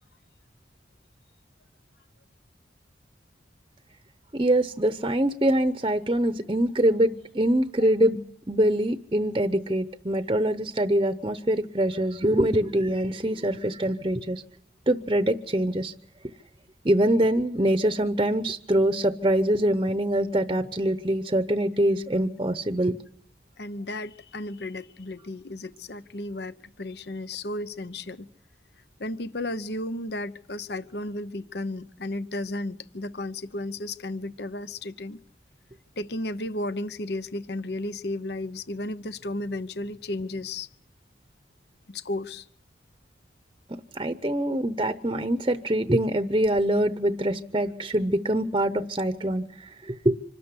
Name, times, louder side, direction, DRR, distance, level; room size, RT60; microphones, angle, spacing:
voice 1, 4.3-8.2 8.5-14.4 14.9-15.9 16.8-23.0 43.9-50.2, right 1 dB, 25° right, 0.8 m, -24 dB
voice 2, 23.6-28.3 29.0-35.2 36.0-40.7 41.9-42.5, left 2 dB, 65° left, 0.9 m, -34 dB
26.0 x 13.0 x 9.8 m
head